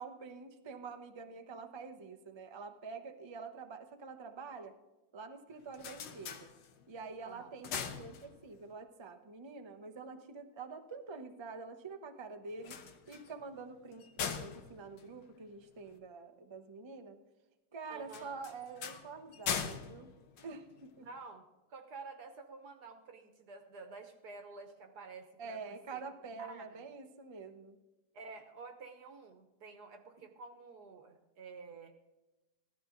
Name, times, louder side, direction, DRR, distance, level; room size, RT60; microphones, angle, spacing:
voice 1, 0.0-4.8 5.1-6.5 6.9-12.8 13.1-17.2 17.7-20.1 20.4-20.7 21.0-21.1 25.4-27.8, right 4 dB, 30° right, 6 dB, 0.5 m, -47 dB
sound 1, 5.5-7.0 7.4-8.7 12.5-16.0 18.1-21.1, left 7 dB, 85° left, 1.7 m, -42 dB
voice 2, 17.9-18.4 20.4-20.5 21.0-26.0 26.4-26.8 28.1-31.9, right 4 dB, 65° right, 6 dB, 1.5 m, -50 dB
15.5 x 12.5 x 3.9 m, 1.0 s
omnidirectional pair, 2.0 m